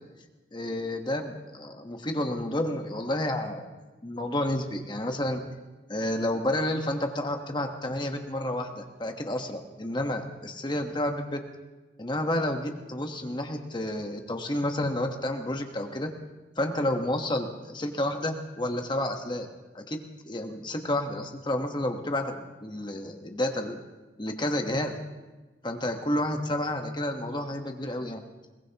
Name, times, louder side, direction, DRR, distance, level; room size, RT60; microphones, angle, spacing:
voice 1, 0.5-3.7 4.0-5.4 5.9-11.4 12.0-16.1 16.6-19.5 19.7-20.0 20.2-23.8 24.2-25.0 25.6-28.2, left 1 dB, 25° left, 4 dB, 1.2 m, -30 dB
21.5 x 18.5 x 2.9 m, 1.2 s
head